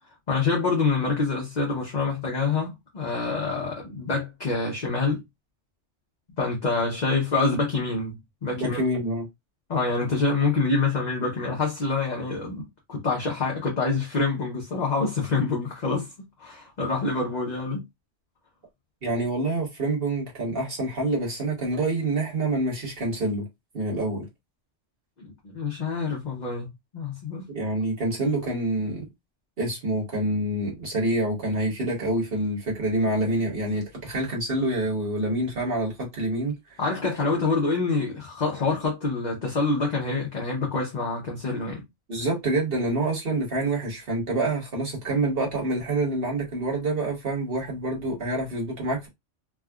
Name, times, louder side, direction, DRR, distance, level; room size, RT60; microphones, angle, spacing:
voice 1, 0.3-5.2 6.4-8.8 9.7-16.1 16.4-17.8 25.2-26.7 26.9-27.5 36.8-41.8, left 3 dB, 40° left, 0.8 m, -26 dB
voice 2, 8.6-9.2 19.0-23.4 23.7-24.3 27.5-29.1 29.6-36.5 42.1-49.1, right 2 dB, 50° right, 1.5 m, -27 dB
3.5 x 2.3 x 2.3 m
omnidirectional pair, 1.3 m